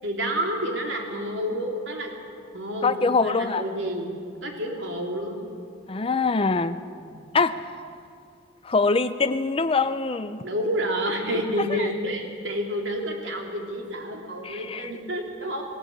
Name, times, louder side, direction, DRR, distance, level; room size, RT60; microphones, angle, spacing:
voice 1, 0.0-2.1 2.5-4.1 4.4-5.5 7.0-7.2 10.4-15.6, equal, 70° right, 1 dB, 3.3 m, -29 dB
voice 2, 2.8-3.6 5.9-6.8 7.3-7.5 8.6-10.4 11.6-11.9 14.4-14.9, left 4 dB, 30° left, 10 dB, 0.5 m, -24 dB
20.0 x 17.0 x 8.7 m, 2.4 s
head